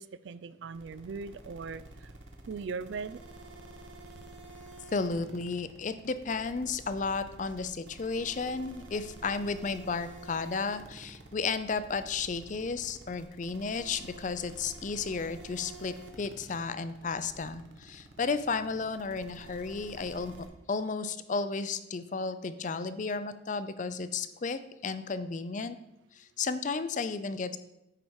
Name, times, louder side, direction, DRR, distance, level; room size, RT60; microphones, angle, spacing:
voice 1, 0.0-2.1 2.5-3.2, right 5 dB, 70° right, 15 dB, 0.4 m, -39 dB
sound 1, 0.7-20.5, right 2 dB, 85° right, 1.2 m, -49 dB
voice 2, 4.9-20.4 20.7-25.8 26.2-27.6, left 4 dB, 40° left, 12 dB, 0.4 m, -33 dB
9.4 x 5.0 x 4.7 m, 0.89 s
head